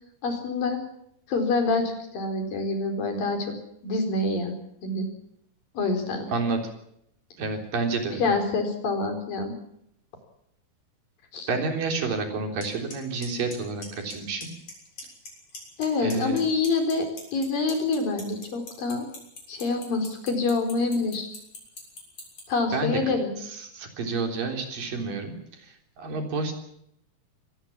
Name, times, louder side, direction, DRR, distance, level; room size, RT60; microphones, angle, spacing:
voice 1, 0.2-0.8 1.3-3.5 3.8-4.5 4.8-5.1 5.7-6.3 8.1-9.5 11.3-11.5 15.8-19.1 19.5-21.3 22.5-23.3, left 3 dB, 70° left, 5 dB, 6.0 m, -26 dB
voice 2, 6.3-6.6 7.4-8.2 11.5-14.5 16.0-16.4 22.7-23.0 23.6-25.3 26.0-26.5, right 4 dB, 70° right, 4 dB, 5.3 m, -29 dB
Clock, 12.6-12.7 12.9-13.3 13.5-14.1 14.4-14.7 15.0-15.8 16.1-22.4, left 3 dB, 45° left, 8.0 m, -39 dB
24.5 x 19.0 x 7.3 m, 0.75 s
omnidirectional pair, 4.2 m